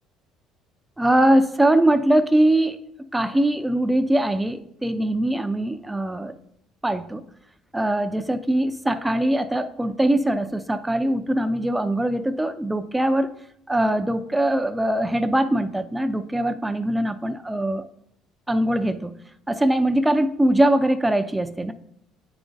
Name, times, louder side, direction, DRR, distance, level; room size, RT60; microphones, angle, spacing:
voice 1, 1.0-2.8 3.1-6.3 6.8-7.2 7.7-13.3 13.7-17.8 18.5-19.1 19.5-21.7, right 1 dB, 10° right, 9 dB, 0.4 m, -22 dB
8.7 x 5.0 x 2.6 m, 0.76 s
supercardioid pair, 95°, 0 cm